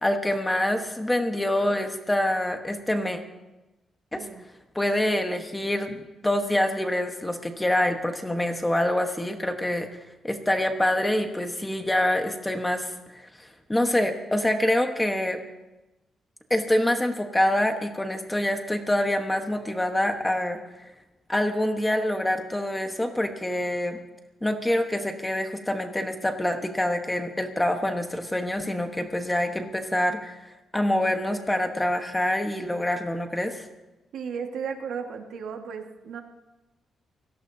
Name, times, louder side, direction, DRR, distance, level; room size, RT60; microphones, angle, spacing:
voice 1, 0.0-3.2 4.1-4.2 4.7-9.9 10.2-15.4 16.5-20.6 21.3-24.0 24.4-30.4 30.7-33.7, left 1 dB, 10° left, 5 dB, 1.2 m, -26 dB
voice 2, 34.1-36.2, right 6 dB, 75° right, 3 dB, 1.7 m, -34 dB
28.0 x 18.0 x 2.8 m, 1.1 s
wide cardioid pair, 160°, 0 cm